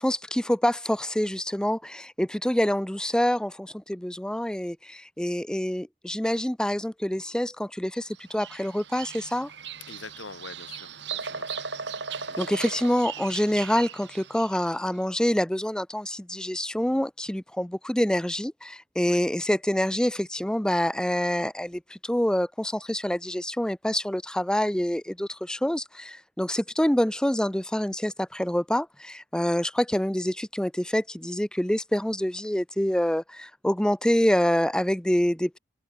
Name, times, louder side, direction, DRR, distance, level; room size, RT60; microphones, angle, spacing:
voice 1, 0.0-9.5 12.1-35.6, equal, 5° left, 0.4 m, -26 dB
Bird vocalization bird call bird song, 8.1-14.8, right 6 dB, 60° right, 3.3 m, -38 dB
voice 2, 9.9-11.7 12.2-12.8 19.0-19.2, left 4 dB, 75° left, 3.1 m, -45 dB
open air
head